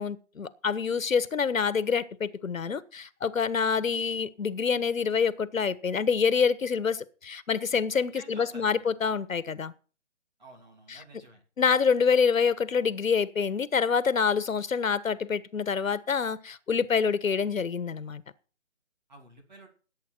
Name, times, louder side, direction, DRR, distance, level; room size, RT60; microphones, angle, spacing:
voice 1, 0.0-9.7 10.9-11.0 11.6-18.2, left 6 dB, 90° left, 1.3 m, -26 dB
voice 2, 8.1-8.8 10.4-11.4 19.1-19.7, right 2 dB, 35° right, 2.9 m, -50 dB
18.0 x 8.6 x 4.5 m
hypercardioid pair, 180°, 39 cm